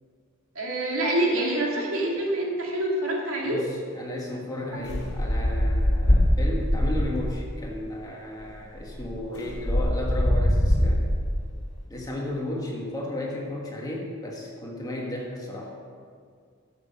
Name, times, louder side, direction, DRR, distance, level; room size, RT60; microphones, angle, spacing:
voice 1, 0.5-3.6, right 1 dB, 75° right, -2 dB, 2.3 m, -26 dB
voice 2, 3.4-11.0 11.9-15.7, left 1 dB, 15° left, -2 dB, 1.6 m, -34 dB
sound 1, 4.9-7.4 8.4-8.5 8.8-11.4, equal, 55° left, 2.2 m, -23 dB
11.5 x 7.4 x 5.4 m, 2.1 s
head